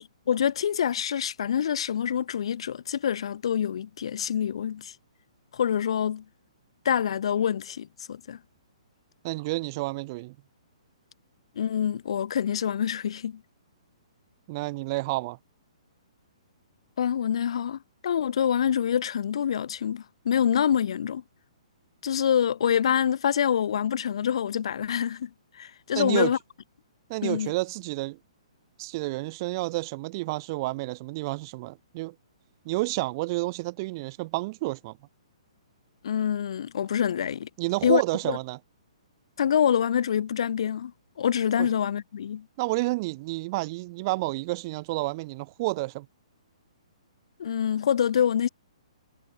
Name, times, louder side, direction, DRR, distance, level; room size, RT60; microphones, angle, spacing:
voice 1, 0.0-4.9 5.5-6.2 6.8-8.4 11.6-13.4 17.0-21.2 22.0-25.3 25.5-26.4 27.2-27.5 36.0-37.5 37.8-38.0 38.3-38.4 39.4-40.9 41.2-42.5 47.4-48.5, left 8 dB, 60° left, 0.9 m, -26 dB
voice 2, 9.2-10.4 14.5-15.4 25.9-26.3 27.1-28.2 28.8-32.1 32.6-35.0 37.6-38.6 41.6-41.7 42.6-46.1, right 22 dB, 40° right, 2.5 m, -30 dB
figure-of-eight pair, 125°, 3 cm